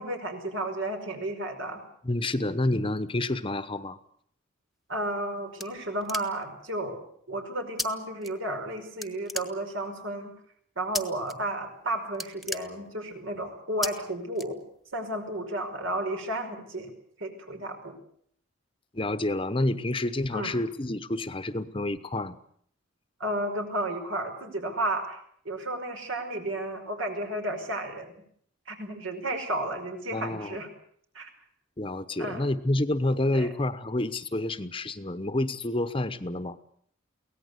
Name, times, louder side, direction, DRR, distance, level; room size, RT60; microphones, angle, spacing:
voice 1, 0.0-1.9 4.9-10.3 10.8-14.6 14.9-16.9 17.2-17.9 20.3-20.6 23.2-25.2 25.5-28.1 28.7-30.7 31.1-31.3 32.2-32.4 33.3-33.5, right 1 dB, 80° right, 5 dB, 5.3 m, -32 dB
voice 2, 2.0-4.0 18.9-22.4 30.1-30.6 31.8-36.6, left 1 dB, 25° left, 13 dB, 0.9 m, -29 dB
sound 1, 4.9-6.6 7.8-7.9 8.2-8.7 9.0-10.0 10.9-11.3 11.7-11.8 12.1-13.2 13.8-13.9 14.3-15.0, left 2 dB, ahead, 1.3 m, -35 dB
23.5 x 18.0 x 8.1 m, 0.64 s
head